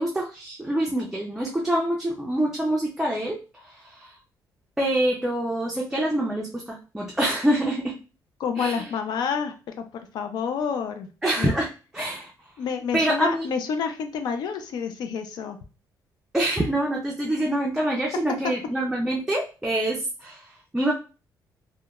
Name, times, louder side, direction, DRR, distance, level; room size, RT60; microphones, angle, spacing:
voice 1, 0.0-4.1 4.8-8.0 8.6-8.9 11.2-12.3 12.9-13.5 16.3-20.9, right 1 dB, 5° right, -2 dB, 0.4 m, -26 dB
voice 2, 8.4-11.1 11.4-11.5 12.6-15.6, left 6 dB, 70° left, 7 dB, 0.4 m, -29 dB
2.8 x 2.1 x 2.3 m, 0.34 s
cardioid pair, 125°, 7 cm